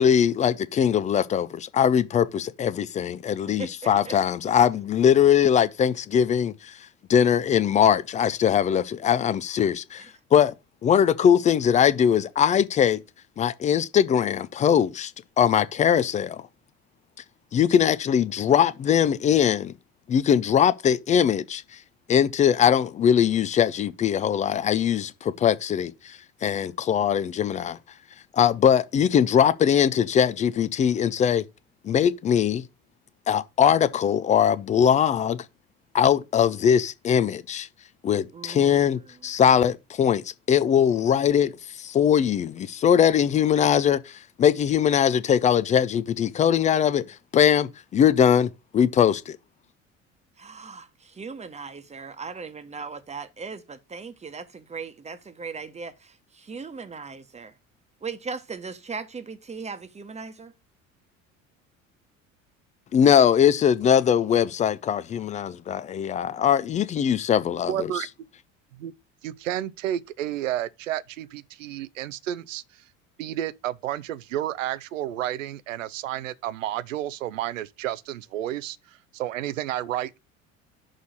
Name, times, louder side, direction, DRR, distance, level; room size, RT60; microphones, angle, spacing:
voice 1, 0.0-6.7 7.1-10.5 10.8-13.0 13.4-15.1 15.4-16.4 17.5-19.7 20.1-21.6 22.1-27.8 28.3-31.4 31.8-32.6 33.3-35.4 35.9-37.7 38.0-41.5 41.8-47.0 47.3-49.4 62.9-67.9, left 8 dB, 20° left, 0.4 m, -21 dB
voice 2, 38.3-39.0 50.4-55.9 56.5-57.5 58.0-60.5, right 4 dB, 15° right, 1.1 m, -38 dB
voice 3, 67.7-68.1 68.7-68.9 69.2-72.6 73.2-80.2, right 12 dB, 70° right, 0.6 m, -31 dB
6.4 x 3.9 x 6.4 m
figure-of-eight pair, 60°, 40 cm